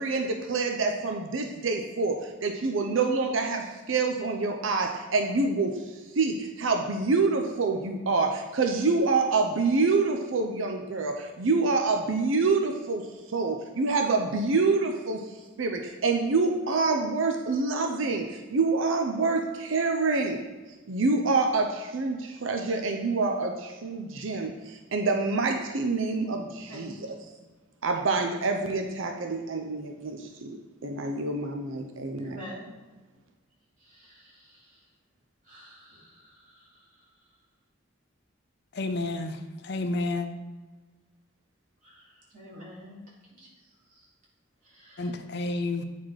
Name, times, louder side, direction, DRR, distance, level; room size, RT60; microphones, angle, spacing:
voice 1, 0.0-5.7 6.2-13.0 13.3-15.2 15.6-20.4 20.9-26.9 27.8-30.6 30.8-32.4, right 3 dB, 75° right, 0.6 m, -26 dB
voice 2, 26.7-27.1 32.2-32.7 33.8-34.8 35.4-37.1 41.8-43.0 43.3-43.5 43.9-44.1 44.6-45.1, equal, 40° right, 2.5 m, -48 dB
voice 3, 38.7-39.4 39.6-40.3 45.0-45.8, left 2 dB, 55° left, 0.5 m, -30 dB
9.0 x 4.2 x 4.7 m
head